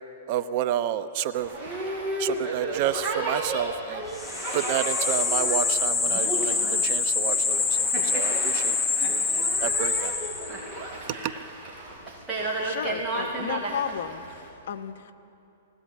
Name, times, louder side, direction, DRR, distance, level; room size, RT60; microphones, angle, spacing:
voice 1, 0.3-1.5 2.2-4.0 4.5-6.5 6.8-7.6 8.1-8.8 9.1-9.2 9.6-10.1 11.2-11.3, right 11 dB, 45° right, 11 dB, 0.9 m, -29 dB
Boat Water vehicle, 1.3-14.5, right 2 dB, 15° right, 6.1 m, -33 dB
sound 1, 4.2-10.7, left 4 dB, 10° left, 1.0 m, -25 dB
voice 2, 12.4-15.1, left 8 dB, 65° left, 6 dB, 1.3 m, -34 dB
20.5 x 19.5 x 8.7 m, 2.8 s
hypercardioid pair, 150°, 0 cm